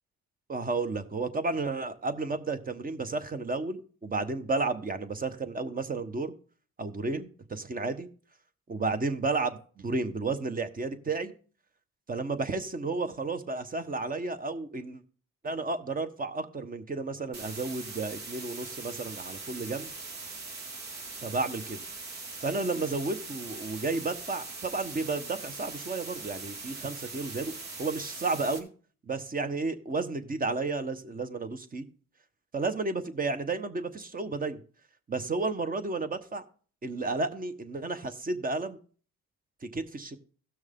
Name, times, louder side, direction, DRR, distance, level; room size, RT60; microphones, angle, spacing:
voice 1, 0.5-6.3 6.8-8.1 8.7-11.3 12.1-15.0 15.4-19.9 21.2-21.8 22.4-27.5 27.8-28.7 29.0-31.9 32.5-34.6 35.1-36.4 36.8-38.8 39.6-40.2, right 3 dB, 30° right, 10 dB, 1.2 m, -32 dB
sound 1, 17.3-28.6, right 3 dB, 65° right, 2.3 m, -41 dB
16.0 x 6.2 x 3.6 m, 0.41 s
cardioid pair, 90°, 30 cm